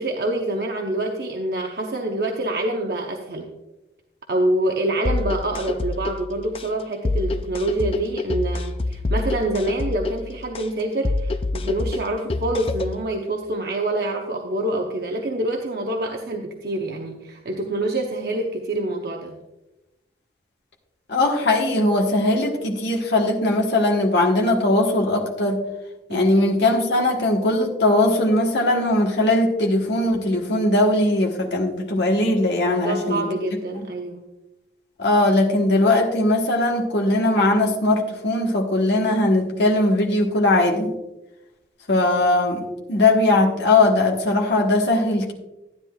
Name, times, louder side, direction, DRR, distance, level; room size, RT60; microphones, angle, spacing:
voice 1, 0.0-3.5 4.3-19.4 26.1-26.4 32.6-34.2 42.5-42.7, right 1 dB, 55° right, 1 dB, 0.8 m, -26 dB
sound 1, 5.1-13.1, left 2 dB, 30° left, 0.4 m, -27 dB
voice 2, 21.1-25.6 26.1-33.3 35.0-40.9 41.9-45.3, left 2 dB, 80° left, 0 dB, 1.3 m, -20 dB
13.0 x 9.8 x 2.4 m, 0.99 s
head